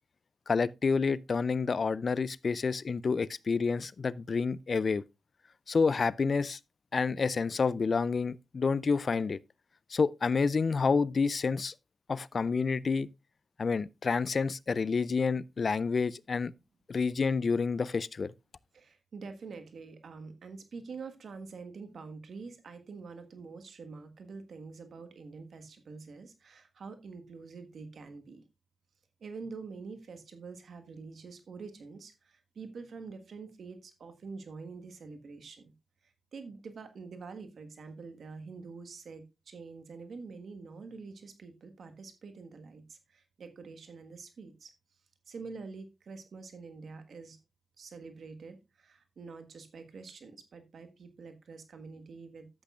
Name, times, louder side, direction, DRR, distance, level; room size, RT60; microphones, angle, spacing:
voice 1, 0.5-5.0 5.7-6.6 6.9-9.4 9.9-11.7 12.1-13.1 13.6-16.5 16.9-18.3, left 5 dB, 60° left, 0.4 m, -29 dB
voice 2, 18.7-28.4 29.2-35.7 36.0-44.7 45.3-47.4 47.8-52.5, right 4 dB, 75° right, 1.5 m, -46 dB
11.5 x 8.2 x 2.4 m
supercardioid pair, 45°, 0 cm